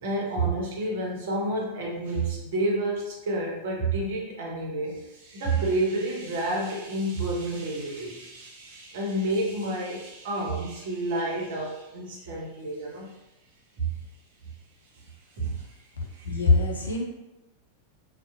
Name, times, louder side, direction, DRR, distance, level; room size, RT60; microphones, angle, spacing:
voice 1, 0.0-13.1 13.8-14.0 14.9-15.1 15.4-15.7 16.1-16.4, right 2 dB, 55° right, -1 dB, 0.7 m, -29 dB
voice 2, 16.2-17.0, left 3 dB, 75° left, 0 dB, 0.5 m, -22 dB
2.6 x 2.0 x 2.3 m, 0.95 s
figure-of-eight pair, 90°, 0 cm